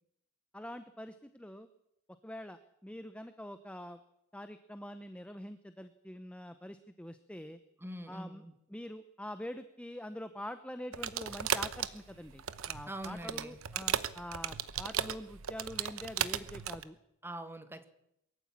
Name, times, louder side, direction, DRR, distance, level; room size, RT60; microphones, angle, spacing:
voice 1, 0.5-1.7 2.2-4.0 4.3-7.6 8.1-8.4 8.7-17.0, left 1 dB, 5° left, 10 dB, 0.8 m, -45 dB
voice 2, 7.8-8.5 12.9-13.6 17.2-17.9, right 1 dB, 10° right, 9 dB, 1.6 m, -43 dB
sound 1, 10.9-16.8, right 9 dB, 65° right, 1.0 m, -36 dB
22.5 x 14.5 x 8.8 m, 0.79 s
head